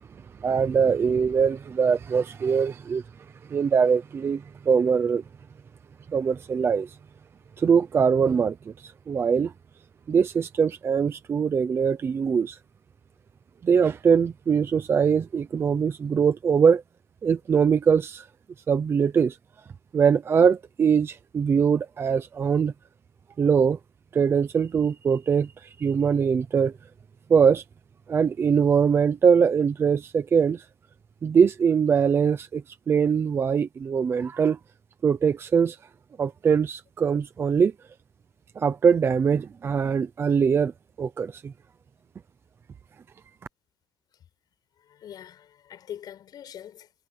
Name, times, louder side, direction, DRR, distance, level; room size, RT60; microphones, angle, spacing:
voice 1, 0.4-3.0 3.5-5.2 6.1-7.0 7.6-9.5 10.1-12.6 13.6-16.8 17.2-18.3 18.7-19.4 19.9-22.7 23.4-23.8 24.1-26.7 27.3-27.6 28.1-30.6 31.2-34.6 35.0-35.8 36.2-37.7 38.6-40.7 41.0-41.5, right 6 dB, 25° right, 0.7 m, -22 dB
voice 2, 44.8-46.9, left 10 dB, 45° left, 5.6 m, -43 dB
cardioid pair, 175°, 10 cm